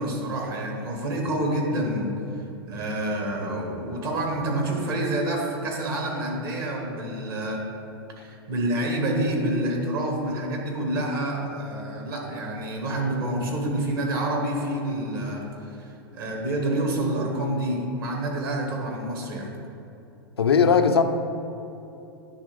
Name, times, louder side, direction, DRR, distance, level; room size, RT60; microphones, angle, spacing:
voice 1, 0.0-2.2 2.7-7.6 8.2-19.5, right 1 dB, 65° right, 1 dB, 1.7 m, -28 dB
voice 2, 20.4-21.0, left 6 dB, 85° left, 6 dB, 0.5 m, -19 dB
10.5 x 3.5 x 5.1 m, 2.9 s
figure-of-eight pair, 95°, 13 cm